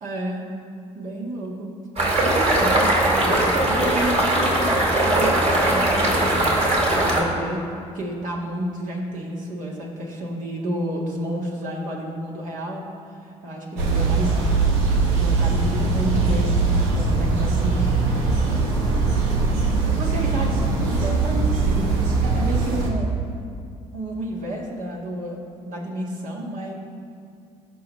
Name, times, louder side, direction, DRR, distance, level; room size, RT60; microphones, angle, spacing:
voice 1, 0.0-0.5 0.9-1.7 2.2-2.9 3.2-4.8 5.1-6.5 7.0-7.7 7.9-12.9 13.2-14.5 15.2-18.0 19.8-21.9 22.2-23.1 23.9-26.7, right 1 dB, 60° right, -2 dB, 1.8 m, -30 dB
sound 1, 2.0-7.2, right 1 dB, 45° right, 2.1 m, -20 dB
sound 2, 13.8-22.9, right 4 dB, 90° right, 1.0 m, -21 dB
15.0 x 5.8 x 3.2 m, 2.4 s
hypercardioid pair, 60°, 15 cm